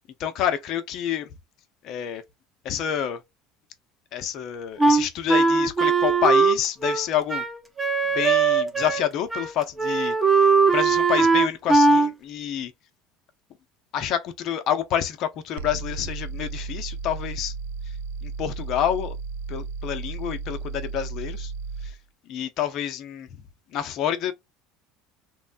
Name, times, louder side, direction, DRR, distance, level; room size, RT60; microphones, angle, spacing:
voice 1, 0.2-1.3 1.8-2.2 2.6-3.2 4.1-7.4 8.1-12.7 13.9-17.5 18.2-19.2 19.5-21.5 21.8-21.9 22.3-23.3 23.7-24.3, left 10 dB, 55° left, 0.6 m, -28 dB
Wind instrument woodwind instrument, 4.8-9.0 9.3-9.5 9.8-12.1, right 4 dB, 15° right, 0.8 m, -19 dB
sound 1, 15.6-22.0, right 4 dB, 90° right, 0.4 m, -34 dB
3.1 x 2.1 x 2.4 m
supercardioid pair, 100°, 0 cm